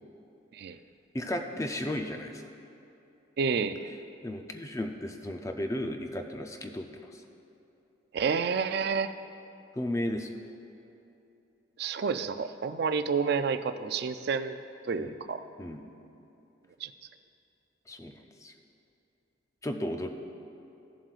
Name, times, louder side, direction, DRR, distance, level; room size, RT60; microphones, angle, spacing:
voice 1, 1.1-2.4 4.2-7.2 9.8-10.3 15.0-15.1 15.6-15.8 17.9-18.1 18.4-18.5 19.6-20.1, left 1 dB, 15° left, 4 dB, 0.4 m, -34 dB
voice 2, 3.4-3.9 8.1-9.1 11.8-14.6 14.9-15.4 16.8-16.9, right 5 dB, 55° right, 10 dB, 0.3 m, -29 dB
15.5 x 7.5 x 2.4 m, 2.8 s
head